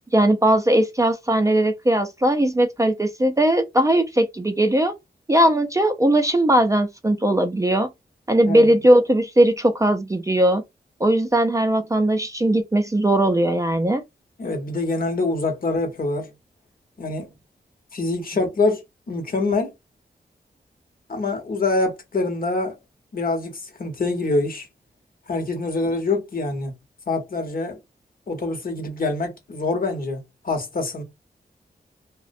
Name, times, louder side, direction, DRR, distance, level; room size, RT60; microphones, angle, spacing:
voice 1, 0.1-5.0 5.3-7.9 8.3-10.6 11.0-14.0, right 1 dB, 20° right, 0.4 m, -19 dB
voice 2, 14.4-16.3 17.0-17.3 17.9-19.7 21.1-22.8 23.1-24.7 25.3-26.7 27.1-27.8 28.3-31.0, left 3 dB, 55° left, 0.8 m, -25 dB
2.4 x 2.1 x 2.5 m
cardioid pair, 65°, 18 cm